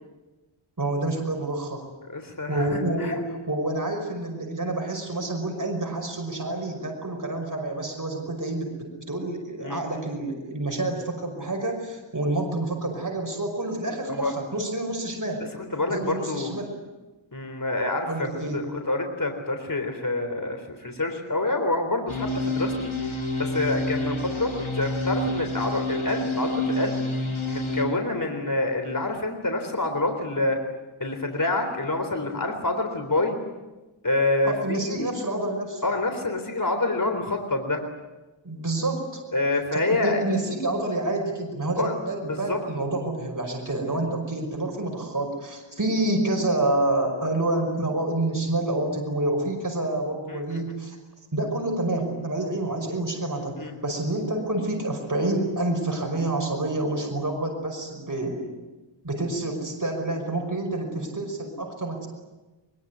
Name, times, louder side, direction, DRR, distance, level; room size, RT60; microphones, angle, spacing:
voice 1, 0.8-1.8 2.5-15.4 15.9-16.7 18.1-18.6 34.4-35.8 38.4-39.2 39.7-51.0 51.3-58.4 59.0-62.1, right 2 dB, 40° right, 2 dB, 5.5 m, -28 dB
voice 2, 2.1-3.2 9.6-9.8 14.0-14.3 15.5-16.5 17.3-22.9 23.3-27.0 27.5-30.6 31.0-33.4 34.0-35.1 35.8-37.8 39.3-40.2 41.8-41.9 42.3-42.6 50.3-50.6 53.6-53.7, left 2 dB, 45° left, 5 dB, 3.7 m, -27 dB
sound 1, 22.1-27.8, left 1 dB, 80° left, 4.4 m, -28 dB
23.0 x 22.5 x 9.5 m, 1.1 s
wide cardioid pair, 60°, 48 cm